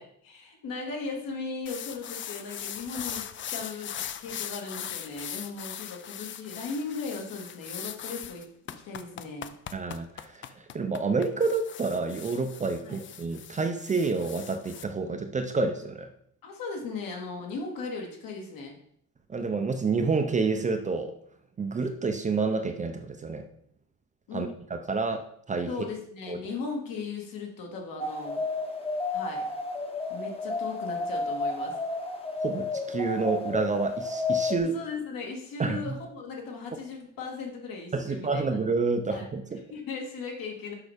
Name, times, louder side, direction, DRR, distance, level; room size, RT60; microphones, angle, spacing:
voice 1, 0.0-3.9 4.2-8.4 8.8-9.5 12.8-13.0 16.4-18.8 24.3-24.5 25.7-28.4 29.1-29.5 30.1-31.8 34.6-38.6 39.1-39.3 39.7-40.7, left 4 dB, 75° left, 1 dB, 2.1 m, -37 dB
sound 1, 1.7-14.8, left 9 dB, 35° left, 0.4 m, -40 dB
voice 2, 9.7-16.1 19.3-21.1 21.6-23.5 24.3-25.7 26.3-26.4 32.4-34.8 35.6-35.9 37.9-39.6, right 4 dB, 20° right, 6 dB, 0.5 m, -29 dB
sound 2, 28.0-34.6, left 3 dB, 15° left, 0.9 m, -31 dB
6.4 x 5.7 x 5.0 m, 0.67 s
cardioid pair, 170°, 35 cm